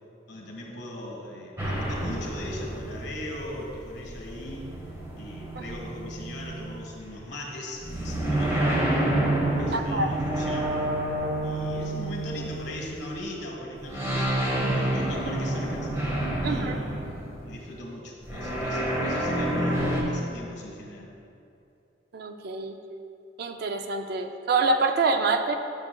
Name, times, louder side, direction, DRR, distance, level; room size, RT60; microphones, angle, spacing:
voice 1, 0.3-4.7 5.2-8.7 9.6-10.8 11.4-15.9 16.4-17.1 17.4-21.1, left 1 dB, 60° left, -1 dB, 1.4 m, -39 dB
sound 1, 1.6-7.2 7.8-13.3 13.8-17.6 18.2-20.0, right 1 dB, 15° right, 1.1 m, -29 dB
voice 2, 9.7-10.1 16.4-16.8 22.1-22.8 23.4-25.6, right 3 dB, 55° right, 6 dB, 0.4 m, -26 dB
10.5 x 6.8 x 2.2 m, 2.6 s
head